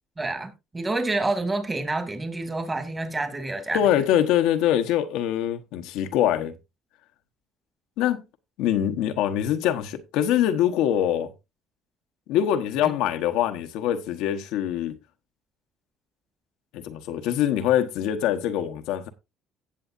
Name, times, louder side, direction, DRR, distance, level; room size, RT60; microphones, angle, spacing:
voice 1, 0.2-3.8 12.8-12.9, right 2 dB, 20° right, 2.4 m, -28 dB
voice 2, 3.7-6.6 8.0-8.2 8.6-11.3 12.3-15.0 16.7-19.1, left 11 dB, 80° left, 1.1 m, -24 dB
17.0 x 7.0 x 2.6 m
supercardioid pair, 85°, 0 cm